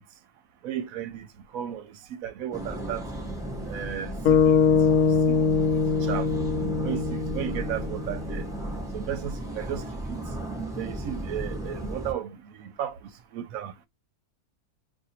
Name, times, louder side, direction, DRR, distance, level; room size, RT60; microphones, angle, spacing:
voice 1, 0.6-1.3 1.5-3.0 3.7-4.6 5.4-6.3 6.8-8.4 8.9-10.2 10.8-12.9 13.3-13.7, right 10 dB, 70° right, 1.0 m, -34 dB
sound 1, 2.5-12.1, right 1 dB, 5° right, 0.5 m, -35 dB
sound 2, 4.2-8.5, left 6 dB, 75° left, 1.1 m, -23 dB
2.5 x 2.5 x 4.2 m
omnidirectional pair, 1.6 m